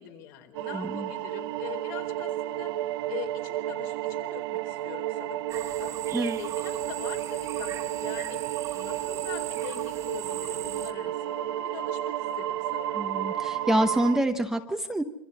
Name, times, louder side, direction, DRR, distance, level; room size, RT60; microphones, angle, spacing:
voice 1, 0.0-2.7 3.1-6.0 6.4-12.9, left 10 dB, 55° left, 5 dB, 4.3 m, -43 dB
sound 1, 0.5-14.2, right 12 dB, 75° right, 1.0 m, -32 dB
voice 2, 0.7-1.1 6.1-6.4 13.0-15.0, right 1 dB, 5° right, 5 dB, 0.8 m, -26 dB
sound 2, 5.5-10.9, right 9 dB, 25° right, 1.1 m, -40 dB
27.0 x 24.5 x 4.1 m, 0.91 s
cardioid pair, 180°, 13 cm